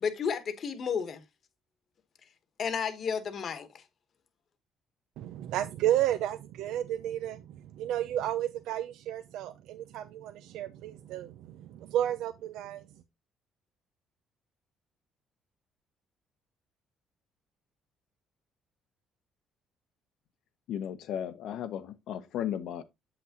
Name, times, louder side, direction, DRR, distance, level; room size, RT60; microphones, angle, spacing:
voice 1, 0.0-1.2 2.6-3.8, left 6 dB, 50° left, 1.1 m, -32 dB
voice 2, 5.2-12.8, right 12 dB, 85° right, 0.5 m, -32 dB
voice 3, 20.7-22.8, left 10 dB, 75° left, 0.8 m, -35 dB
7.5 x 5.9 x 2.8 m
cardioid pair, 110°, 0 cm